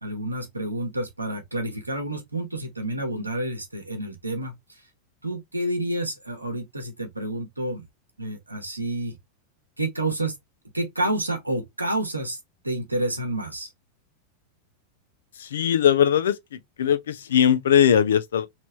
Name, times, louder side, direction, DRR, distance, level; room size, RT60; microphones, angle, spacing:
voice 1, 0.0-4.8 5.2-7.9 8.2-9.2 9.8-10.4 10.7-12.4 12.6-13.7, right 1 dB, 85° right, 1.0 m, -29 dB
voice 2, 15.4-18.5, left 9 dB, 65° left, 0.5 m, -20 dB
3.2 x 2.9 x 2.9 m
figure-of-eight pair, 90°, 0 cm